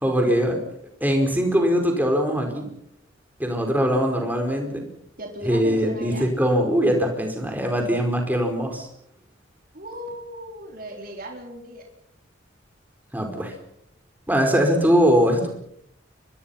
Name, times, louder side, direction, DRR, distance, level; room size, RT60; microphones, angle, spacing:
voice 1, 0.0-0.6 1.0-2.7 3.4-4.9 5.4-8.9 13.1-13.5 14.3-15.5, equal, 10° right, 3 dB, 4.9 m, -21 dB
voice 2, 5.2-6.3 9.7-11.9, right 1 dB, 45° right, 2 dB, 4.0 m, -37 dB
30.0 x 23.5 x 5.8 m, 0.73 s
head